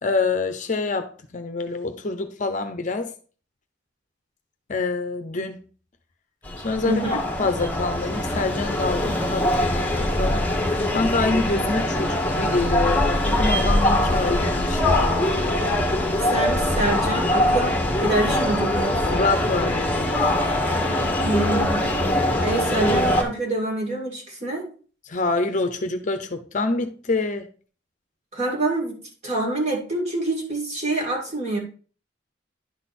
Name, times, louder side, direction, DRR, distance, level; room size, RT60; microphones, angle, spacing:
voice 1, 0.0-3.1 4.7-5.6 6.6-7.0 7.4-10.6 10.9-15.3 19.1-20.1 25.1-27.5, left 3 dB, 40° left, 0.7 m, -26 dB
sound 1, 6.4-23.2, left 1 dB, 10° left, 1.2 m, -22 dB
voice 2, 6.8-7.2 16.3-19.1 21.2-21.8 22.4-24.6 28.3-29.0 29.2-31.6, right 2 dB, 35° right, 2.2 m, -26 dB
10.5 x 4.0 x 4.2 m
head